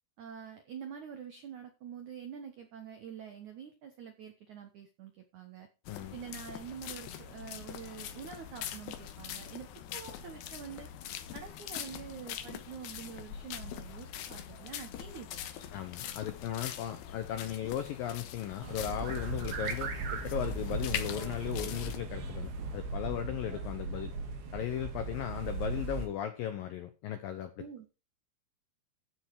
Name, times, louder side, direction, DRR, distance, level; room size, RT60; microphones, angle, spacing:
voice 1, 0.2-5.7 6.1-10.9 11.3-15.4 27.6-27.9, right 8 dB, 80° right, 1.7 m, -46 dB
sound 1, 5.8-22.0, left 10 dB, 70° left, 2.5 m, -43 dB
voice 2, 15.7-24.1 24.5-27.6, left 10 dB, 90° left, 2.0 m, -37 dB
sound 2, 18.6-26.1, right 3 dB, 60° right, 3.7 m, -37 dB
14.5 x 6.3 x 4.7 m
omnidirectional pair, 5.5 m